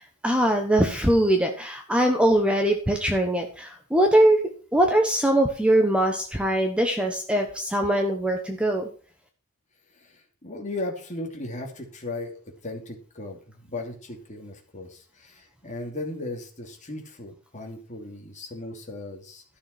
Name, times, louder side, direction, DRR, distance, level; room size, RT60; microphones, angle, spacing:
voice 1, 0.2-4.4 4.7-8.9, right 1 dB, 5° right, 3 dB, 1.2 m, -22 dB
voice 2, 10.0-19.4, left 2 dB, 35° left, 1 dB, 2.9 m, -37 dB
13.0 x 6.8 x 6.0 m, 0.40 s
head